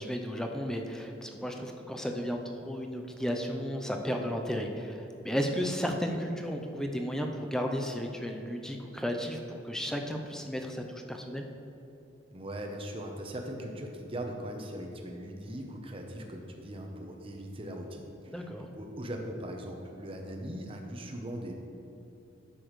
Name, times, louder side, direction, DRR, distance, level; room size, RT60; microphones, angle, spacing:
voice 1, 0.0-11.5 18.3-18.7, equal, 5° left, 3 dB, 0.5 m, -34 dB
voice 2, 12.3-21.5, right 1 dB, 30° right, 2 dB, 0.8 m, -40 dB
10.0 x 7.0 x 3.2 m, 2.9 s
head